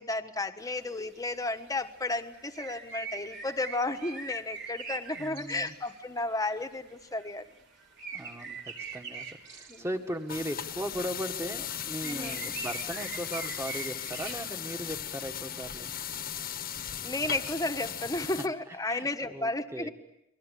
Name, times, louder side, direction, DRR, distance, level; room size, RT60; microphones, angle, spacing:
voice 1, 0.0-7.5 9.7-9.8 12.0-12.4 17.0-19.9, left 2 dB, 15° left, 7 dB, 1.3 m, -33 dB
sound 1, 0.6-0.9 1.7-6.0 6.4-10.8 11.2-11.3 11.7-15.4 15.9-17.5, right 5 dB, 55° right, 3.3 m, -43 dB
voice 2, 5.2-5.7 8.1-15.9 18.7-19.9, right 1 dB, 10° right, 6 dB, 1.8 m, -38 dB
sound 2, 10.3-18.5, left 9 dB, 40° left, 1.3 m, -37 dB
30.0 x 22.0 x 8.5 m, 0.83 s
head